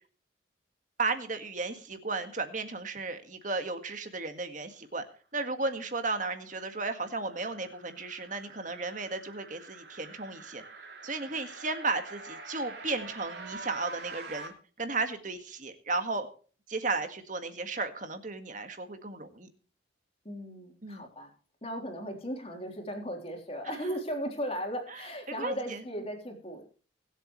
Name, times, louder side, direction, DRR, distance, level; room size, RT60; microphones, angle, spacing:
voice 1, 1.0-5.0 5.3-10.6 11.0-14.5 14.8-16.3 16.7-19.5 20.8-21.0 25.4-25.8, right 3 dB, 40° right, 7 dB, 1.8 m, -34 dB
sound 1, 6.4-14.5, right 3 dB, 55° right, 3.1 m, -46 dB
voice 2, 20.2-21.3 21.6-26.6, equal, 30° left, 2 dB, 3.6 m, -37 dB
24.5 x 8.1 x 3.2 m, 0.40 s
head